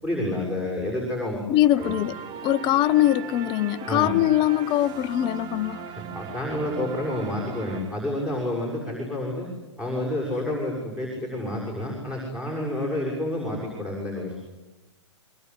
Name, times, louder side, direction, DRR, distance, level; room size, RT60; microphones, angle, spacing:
voice 1, 0.0-1.4 1.8-1.9 3.9-4.1 5.8-9.5 9.8-14.4, left 1 dB, 5° right, 7.0 m, -29 dB
voice 2, 1.5-2.2 2.4-5.8, left 13 dB, 30° left, 1.0 m, -22 dB
sound 1, 1.8-8.4, right 7 dB, 30° right, 1.5 m, -39 dB
24.0 x 23.5 x 9.8 m
figure-of-eight pair, 115°, 16 cm